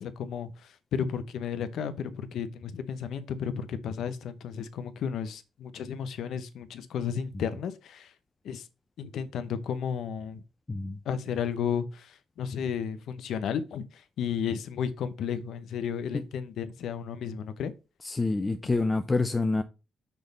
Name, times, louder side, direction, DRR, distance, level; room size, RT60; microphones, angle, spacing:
voice 1, 0.0-8.1 8.4-8.7 9.0-10.4 11.0-17.7, left 7 dB, 70° left, 0.8 m, -33 dB
voice 2, 10.7-11.0 16.1-16.2 18.0-19.6, left 3 dB, 20° left, 0.6 m, -27 dB
6.1 x 3.5 x 5.3 m
cardioid pair, 90°, 0 cm